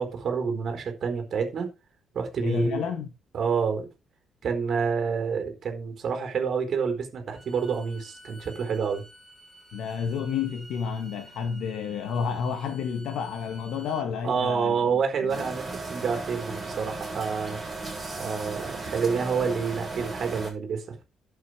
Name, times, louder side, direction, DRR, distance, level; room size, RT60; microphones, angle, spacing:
voice 1, 0.0-1.7 2.1-2.9 3.3-3.9 4.4-9.0 14.2-17.6 18.2-21.0, right 6 dB, 40° right, 4.2 m, -28 dB
voice 2, 2.4-3.1 9.7-14.8 15.2-15.4, left 6 dB, 65° left, 1.8 m, -30 dB
Bowed string instrument, 7.3-14.1, equal, 5° left, 3.3 m, -51 dB
sound 1, 15.3-20.5, right 3 dB, 10° right, 7.5 m, -36 dB
11.5 x 7.8 x 4.9 m
cardioid pair, 165°, 0 cm